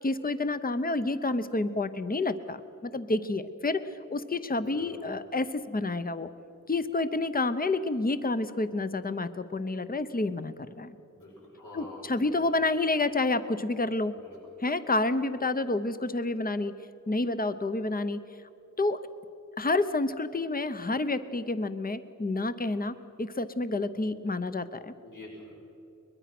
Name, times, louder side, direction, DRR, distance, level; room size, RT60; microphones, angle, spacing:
voice 1, 0.0-6.3 6.7-11.0 11.7-14.1 14.6-16.7 17.1-18.2 18.8-19.0 19.6-24.9, left 2 dB, 30° left, 11 dB, 0.8 m, -29 dB
voice 2, 4.7-5.1 11.1-12.5 14.2-14.4 25.0-25.6, left 1 dB, 80° left, -4 dB, 6.2 m, -46 dB
22.5 x 21.5 x 6.0 m, 2.9 s
wide cardioid pair, 85°, 31 cm